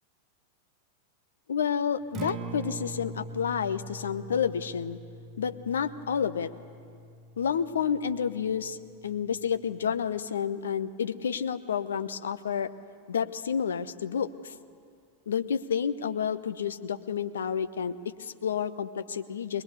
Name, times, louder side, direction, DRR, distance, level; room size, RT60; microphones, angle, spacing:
voice 1, 1.5-5.0 5.4-6.5 7.4-8.8 9.0-12.7 13.1-14.5 15.3-19.6, left 7 dB, 65° left, 12 dB, 0.9 m, -30 dB
Acoustic guitar, 2.0-10.2, right 2 dB, 30° right, 1.2 m, -43 dB
21.5 x 20.5 x 8.3 m, 2.2 s
figure-of-eight pair, 90°, 0 cm